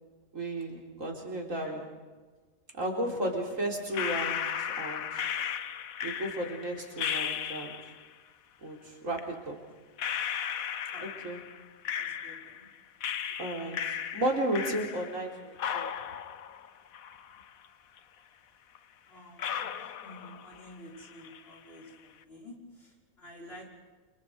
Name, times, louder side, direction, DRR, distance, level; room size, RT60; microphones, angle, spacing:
voice 1, 0.3-1.9 2.7-5.2 6.0-7.8 8.6-9.6 11.2-11.4 13.4-15.9, right 1 dB, 65° right, 1 dB, 4.4 m, -34 dB
sound 1, 3.9-8.1 9.2-9.3 10.0-12.7 13.0-15.3 15.6-17.7 18.0-18.1 18.7-18.8 19.4-20.7 21.0-21.5, left 8 dB, 75° left, 1.4 m, -35 dB
voice 2, 11.9-12.7 19.1-23.7, left 1 dB, 45° left, -2 dB, 6.1 m, -50 dB
29.5 x 28.0 x 4.8 m, 1.3 s
omnidirectional pair, 1.5 m